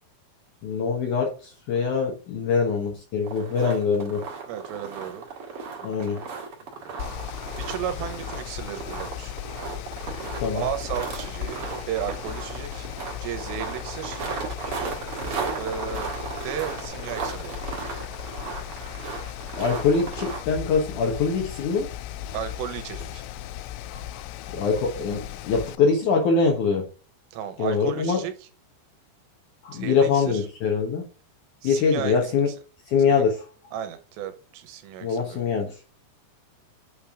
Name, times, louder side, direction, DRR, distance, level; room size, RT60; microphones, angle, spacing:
voice 1, 0.6-4.2 5.8-6.8 10.1-10.6 19.6-21.9 23.9-26.9 27.6-28.2 29.6-31.1 31.6-32.5 32.9-33.5 35.0-35.7, left 5 dB, 65° left, 2.1 m, -24 dB
sound 1, 3.2-20.4, right 5 dB, 55° right, 1.6 m, -36 dB
voice 2, 4.5-5.3 7.6-9.3 10.5-12.9 13.2-14.3 15.6-16.1 16.4-17.6 22.3-23.2 27.3-28.3 29.7-30.4 31.6-32.3 33.1-33.2 33.7-35.4, right 9 dB, 90° right, 3.1 m, -34 dB
Mechanical fan, 7.0-25.8, left 12 dB, 80° left, 2.4 m, -37 dB
sound 2, 10.0-12.3 14.0-16.9, right 7 dB, 70° right, 2.5 m, -41 dB
8.6 x 3.4 x 3.6 m
omnidirectional pair, 4.9 m